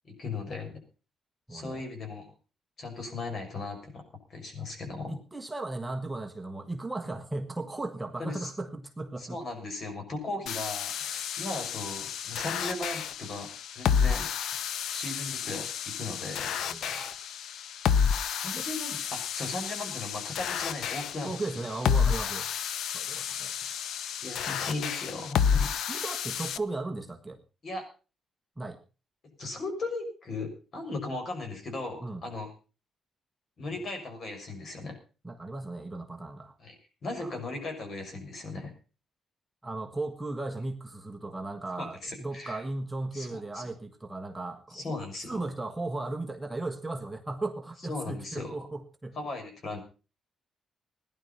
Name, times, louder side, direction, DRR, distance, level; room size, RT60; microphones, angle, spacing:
voice 1, 0.0-0.8 1.5-2.3 2.8-4.0 4.3-5.2 8.2-8.5 9.2-14.3 14.9-16.5 18.3-21.4 24.2-26.1 27.6-27.8 29.4-32.5 33.6-35.0 36.6-36.8 37.0-38.7 41.8-42.6 43.1-43.7 44.7-45.4 47.9-48.5 49.2-49.8, left 2 dB, 45° left, 5 dB, 6.4 m, -37 dB
voice 2, 1.5-1.8 5.1-9.4 16.7-17.2 21.2-22.5 22.9-23.5 24.5-24.6 25.9-27.4 28.6-28.8 32.0-32.2 35.2-36.5 37.2-37.4 39.6-44.8 45.3-49.2, right 2 dB, 10° right, 3 dB, 1.5 m, -36 dB
sound 1, 10.5-26.6, left 7 dB, 80° left, 0.8 m, -30 dB
18.0 x 11.0 x 5.7 m, 0.36 s
cardioid pair, 120°, 0 cm